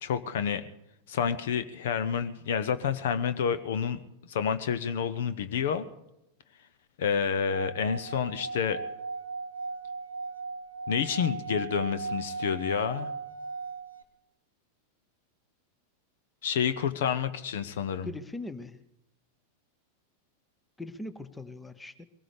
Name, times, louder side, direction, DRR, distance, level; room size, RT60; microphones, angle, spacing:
voice 1, 0.0-0.7 1.1-4.0 4.3-5.9 7.0-8.8 10.9-13.1 16.4-18.1, left 7 dB, 55° left, 13 dB, 0.8 m, -29 dB
Singing / Glass, 7.5-14.0, right 4 dB, 85° left, 1.3 m, -37 dB
voice 2, 18.0-18.8 20.8-22.1, left 2 dB, 10° left, 13 dB, 0.8 m, -40 dB
23.0 x 18.0 x 3.4 m, 0.89 s
figure-of-eight pair, 90°, 0 cm